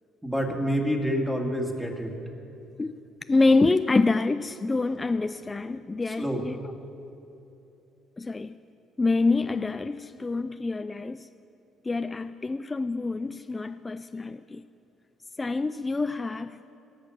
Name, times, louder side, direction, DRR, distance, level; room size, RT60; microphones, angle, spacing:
voice 1, 0.2-2.1 6.2-6.4, equal, 5° right, 2.1 m, -27 dB
voice 2, 3.3-6.6 8.2-8.5 9.0-11.3 11.8-14.6 15.4-16.6, left 3 dB, 25° left, 0.3 m, -26 dB
17.5 x 6.5 x 6.5 m
supercardioid pair, 70°, 0 cm